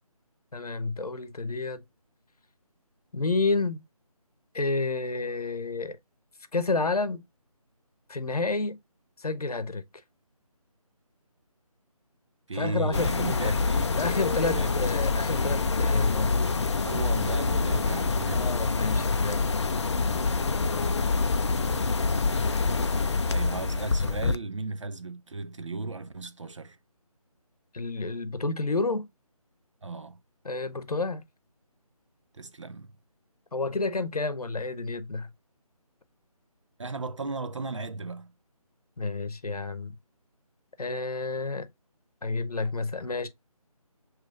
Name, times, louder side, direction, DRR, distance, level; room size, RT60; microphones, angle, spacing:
voice 1, 0.5-1.8 3.1-3.8 4.5-6.0 6.5-7.2 8.1-8.8 9.2-9.8 12.5-13.6 14.0-16.4 18.3-19.5 27.7-29.1 30.4-31.2 33.5-35.3 39.0-40.0 40.8-41.7 42.2-43.3, left 3 dB, 75° left, 0.8 m, -30 dB
voice 2, 12.5-13.9 14.4-14.7 16.8-18.5 22.9-26.8 29.8-30.2 32.3-32.9 36.8-38.3, right 3 dB, 55° right, 0.5 m, -35 dB
sound 1, 12.9-24.4, left 4 dB, 50° left, 0.4 m, -26 dB
6.6 x 3.1 x 2.4 m
figure-of-eight pair, 160°, 19 cm